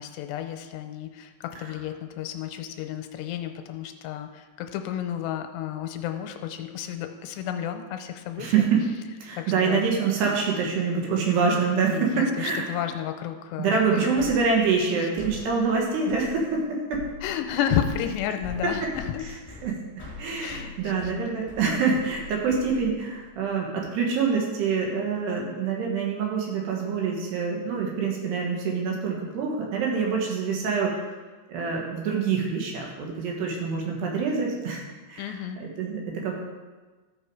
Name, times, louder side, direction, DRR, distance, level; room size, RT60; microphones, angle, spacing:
voice 1, 0.0-8.5 9.4-9.8 11.9-14.3 15.0-15.1 17.2-19.3 20.4-21.1 35.2-35.6, left 10 dB, 85° left, 6 dB, 2.7 m, -32 dB
voice 2, 8.4-8.8 9.2-12.6 13.6-17.0 19.6-19.8 20.2-31.1 31.5-35.3 35.6-36.4, right 5 dB, 75° right, -1 dB, 3.4 m, -26 dB
sound 1, 14.2-23.3, left 4 dB, 10° left, 1.5 m, -43 dB
13.5 x 6.1 x 4.8 m, 1.3 s
omnidirectional pair, 5.0 m